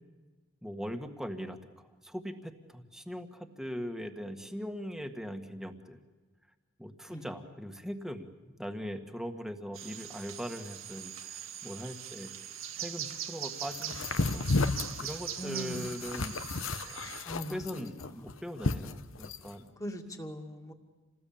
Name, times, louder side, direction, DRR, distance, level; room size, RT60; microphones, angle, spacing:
voice 1, 0.6-6.0 6.8-12.3 12.8-14.4 15.0-16.4 16.8-17.1 17.5-19.7, equal, ahead, 6 dB, 1.6 m, -40 dB
sound 1, 9.7-17.2, right 10 dB, 85° right, 1.9 m, -42 dB
sound 2, 13.7-19.5, left 3 dB, 75° left, 1.0 m, -33 dB
voice 2, 15.4-16.0 17.2-17.9 18.3-18.4 19.8-20.7, equal, 15° left, 4 dB, 2.3 m, -40 dB
28.0 x 19.5 x 8.7 m, 1.3 s
head